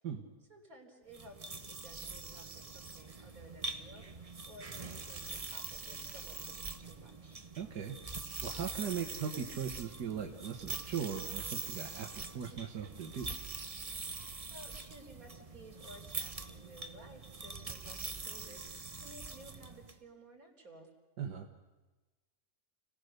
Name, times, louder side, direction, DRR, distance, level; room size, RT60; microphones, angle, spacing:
voice 1, 0.5-7.4 14.5-20.9, right 1 dB, 60° right, 1 dB, 4.3 m, -55 dB
sound 1, 1.1-20.0, right 4 dB, 25° right, 0.9 m, -44 dB
voice 2, 7.6-7.9 8.4-13.3 21.2-21.5, right 7 dB, 90° right, 2 dB, 2.0 m, -39 dB
29.5 x 18.5 x 6.7 m, 1.2 s
omnidirectional pair, 1.7 m